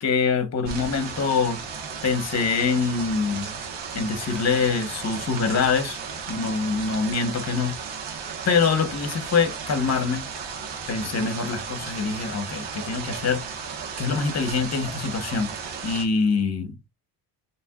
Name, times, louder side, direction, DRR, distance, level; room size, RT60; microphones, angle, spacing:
voice 1, 0.0-1.6 2.0-3.5 3.9-6.0 6.3-7.8 8.4-10.2 10.9-13.6 14.0-15.5 15.8-16.7, left 5 dB, 40° left, 1.1 m, -24 dB
sound 1, 0.6-16.1, right 6 dB, 85° right, 1.2 m, -35 dB
5.8 x 3.1 x 2.4 m
cardioid pair, 120°, 42 cm